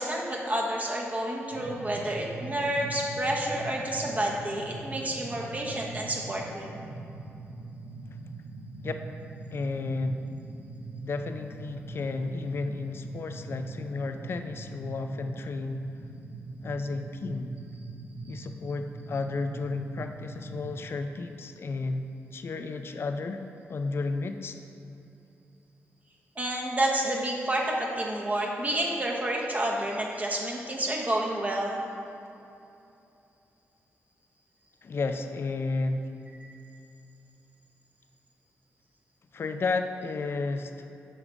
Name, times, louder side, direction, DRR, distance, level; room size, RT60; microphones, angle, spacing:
voice 1, 0.0-6.9 18.3-18.5 26.4-31.8, right 1 dB, 30° right, -2 dB, 1.0 m, -29 dB
sound 1, 1.5-20.8, right 3 dB, 85° right, 1.0 m, -42 dB
voice 2, 9.5-10.2 11.0-15.9 16.6-17.5 18.3-23.4 23.7-24.6 34.8-36.1 39.3-40.9, left 3 dB, 50° left, 7 dB, 0.4 m, -32 dB
7.1 x 3.4 x 5.0 m, 2.7 s
cardioid pair, 60°, 5 cm